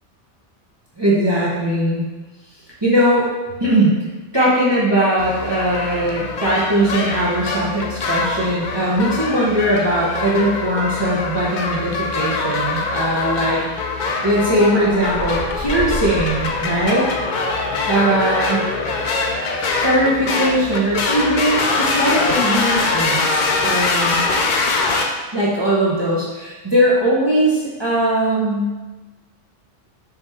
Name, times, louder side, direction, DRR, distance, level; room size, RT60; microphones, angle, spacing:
voice 1, 1.0-2.1 2.8-3.3 3.6-3.9 4.3-13.6 14.2-17.1 17.9-18.6 19.6-24.2 25.3-28.7, right 1 dB, 25° right, -7 dB, 0.7 m, -19 dB
sound 1, 5.2-25.1, left 3 dB, 60° left, 0.5 m, -23 dB
sound 2, 14.9-17.5, left 1 dB, 20° left, 0.7 m, -31 dB
4.7 x 3.0 x 3.4 m, 1.2 s
omnidirectional pair, 1.2 m